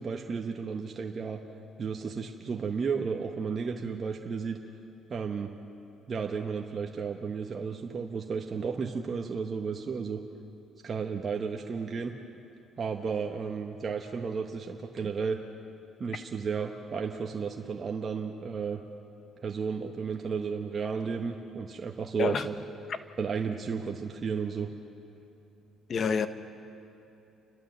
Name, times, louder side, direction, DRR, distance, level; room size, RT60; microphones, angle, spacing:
voice 1, 0.0-1.4 1.8-4.6 5.1-5.5 6.1-10.2 10.8-12.1 12.8-15.4 16.0-18.8 19.4-22.6 23.2-24.7, right 5 dB, 40° right, 2 dB, 1.2 m, -33 dB
voice 2, 25.9-26.3, left 6 dB, 45° left, 11 dB, 1.1 m, -27 dB
30.0 x 12.5 x 7.3 m, 2.9 s
cardioid pair, 110°, 0 cm